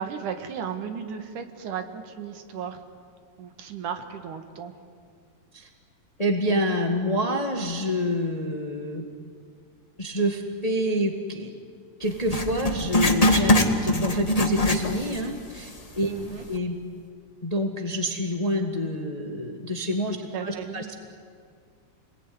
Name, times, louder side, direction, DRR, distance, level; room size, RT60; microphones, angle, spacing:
voice 1, 0.0-2.8 3.4-4.7 16.1-16.5 20.3-20.9, right 7 dB, 70° right, 7 dB, 3.1 m, -35 dB
voice 2, 6.2-9.0 10.0-11.5 12.0-15.7 15.9-16.1 16.5-16.8 17.4-21.0, equal, 15° left, 3 dB, 1.3 m, -27 dB
Writing, 12.3-15.3 15.6-15.7 16.4-16.5, left 1 dB, 40° left, 0.5 m, -22 dB
29.0 x 21.0 x 9.8 m, 2.1 s
omnidirectional pair, 3.8 m